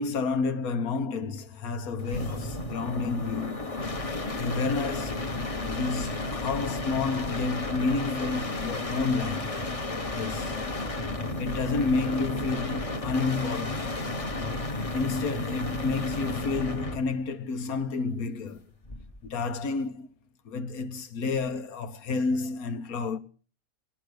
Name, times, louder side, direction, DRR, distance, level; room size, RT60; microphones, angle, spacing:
voice 1, 0.0-3.7 4.0-5.4 5.6-9.6 10.1-10.7 11.4-13.9 14.9-18.6 19.2-20.1 20.4-23.2, left 4 dB, 85° left, 1.6 m, -30 dB
sound 1, 2.0-17.1 18.8-19.3, left 2 dB, 25° left, 1.2 m, -32 dB
19.0 x 11.5 x 6.6 m
omnidirectional pair, 1.5 m